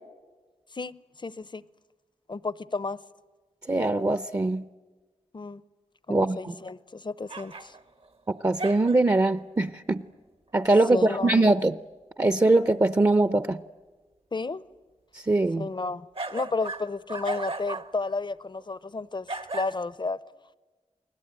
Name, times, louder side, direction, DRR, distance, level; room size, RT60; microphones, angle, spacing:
voice 1, 0.7-1.6 2.3-3.0 5.3-5.6 6.1-7.8 10.9-11.5 14.3-14.6 15.6-19.3 19.5-20.2, left 3 dB, 40° left, 0.8 m, -32 dB
voice 2, 3.7-4.7 6.1-6.5 8.3-10.0 10.5-11.8 12.2-13.6 15.1-15.7, right 2 dB, 25° right, 0.7 m, -22 dB
sound 1, 7.3-8.1 8.6-9.2 16.1-17.9 18.6-18.7 19.3-19.9, right 2 dB, 50° right, 1.1 m, -36 dB
29.5 x 20.0 x 9.0 m
cardioid pair, 55°, 12 cm